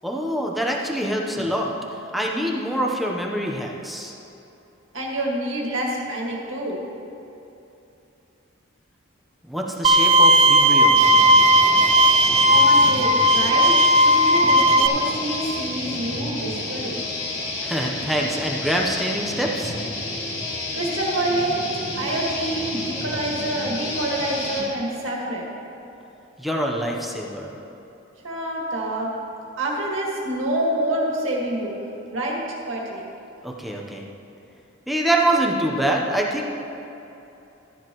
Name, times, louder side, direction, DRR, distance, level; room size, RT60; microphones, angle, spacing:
voice 1, 0.0-1.7 2.1-4.1 9.4-11.0 17.6-19.7 26.4-27.5 33.4-34.0 34.9-36.5, right 1 dB, ahead, -1 dB, 0.8 m, -25 dB
voice 2, 4.9-6.8 12.5-13.8 14.0-17.1 20.7-25.5 28.2-29.2 29.6-31.7 32.1-33.1, right 1 dB, 75° right, -2 dB, 1.9 m, -27 dB
Bowed string instrument, 9.8-14.9, right 1 dB, 30° right, 0.4 m, -15 dB
sound 1, 11.0-24.7, left 2 dB, 65° left, 2.3 m, -30 dB
13.0 x 10.5 x 3.1 m, 2.9 s
head